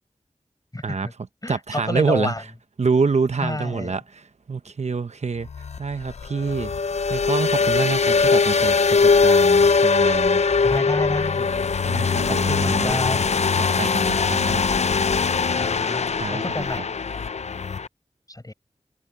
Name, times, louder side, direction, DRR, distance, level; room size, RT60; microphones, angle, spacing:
voice 1, 0.7-1.1 1.4-2.4 3.4-4.0 10.6-11.6 12.3-13.3 15.5-16.0 16.3-16.9 18.3-18.5, left 1 dB, 35° left, 5.8 m, -29 dB
voice 2, 1.5-2.3 2.8-4.2 4.5-5.5 5.8-6.7 7.1-10.4 11.9-13.0 13.6-14.6 16.2-16.4, right 4 dB, 80° right, 0.9 m, -26 dB
sound 1, 5.4-17.9, left 5 dB, 75° left, 0.4 m, -21 dB
wide cardioid pair, 65°, 11 cm